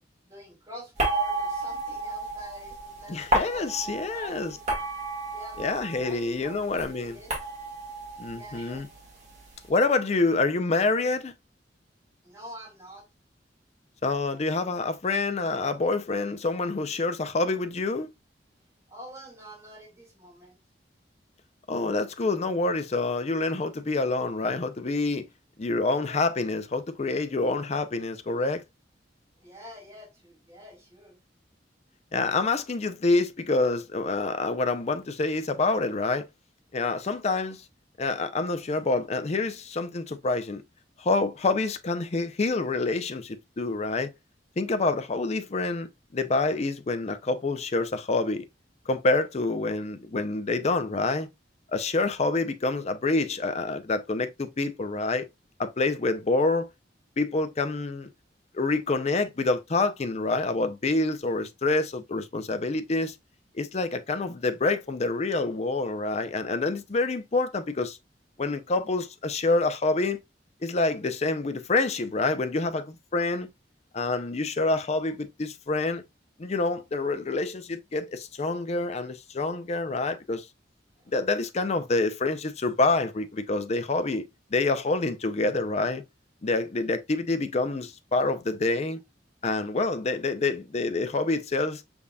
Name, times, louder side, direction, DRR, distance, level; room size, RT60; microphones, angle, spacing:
voice 1, 0.0-4.6 5.3-7.4 8.3-8.9 12.2-13.1 18.9-20.6 29.3-31.2 81.0-81.1, equal, 15° right, 2.1 m, -47 dB
sound 1, 1.0-6.3 6.5-9.4, right 2 dB, 40° right, 1.8 m, -32 dB
voice 2, 3.1-4.5 5.6-7.2 8.2-8.9 9.7-11.3 14.0-18.1 21.7-25.3 25.6-28.6 32.1-36.3 36.7-37.6 38.0-40.6 41.0-44.1 44.6-48.5 48.9-51.3 51.7-55.3 55.6-56.7 57.2-58.1 58.5-63.1 63.5-68.0 68.4-70.2 70.6-73.5 73.9-76.0 76.4-80.5 81.1-84.2 84.5-86.0 86.4-89.0 89.4-91.8, left 3 dB, 40° left, 0.5 m, -27 dB
5.4 x 3.5 x 2.3 m
head